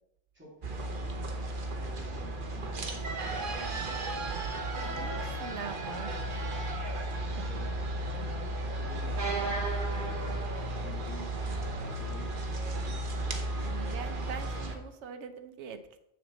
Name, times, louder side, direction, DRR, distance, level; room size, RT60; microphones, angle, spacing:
voice 1, 0.3-1.3 1.8-4.4 4.9-6.8 7.4-13.1, left 1 dB, 10° right, -6 dB, 2.6 m, -51 dB
sound 1, 0.6-14.8, right 2 dB, 50° right, 1.0 m, -34 dB
voice 2, 4.8-6.5 7.3-7.5 13.6-16.0, right 6 dB, 80° right, 9 dB, 1.0 m, -43 dB
7.0 x 6.4 x 4.1 m, 0.80 s
omnidirectional pair, 1.2 m